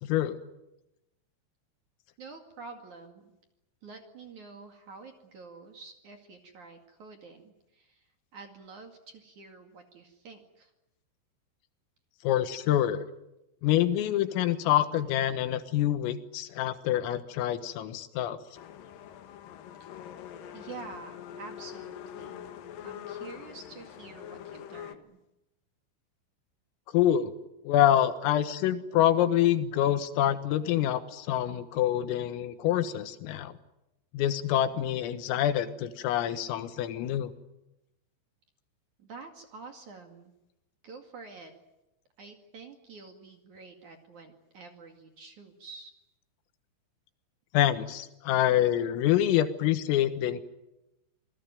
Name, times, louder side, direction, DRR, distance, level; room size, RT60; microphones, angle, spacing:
voice 1, 0.0-0.4 12.2-13.0 13.6-18.4 26.9-27.3 27.7-33.6 34.1-37.3 47.5-50.4, left 11 dB, 90° left, 11 dB, 4.0 m, -26 dB
voice 2, 2.2-3.3 3.8-10.7 19.8-19.9 20.5-22.5 22.8-25.2 39.0-40.3 40.8-41.5 42.2-45.9, right 4 dB, 45° right, 4 dB, 2.9 m, -48 dB
sound 1, 18.5-24.9, left 10 dB, 70° left, 2.2 m, -44 dB
27.5 x 19.5 x 9.2 m, 0.91 s
omnidirectional pair, 5.9 m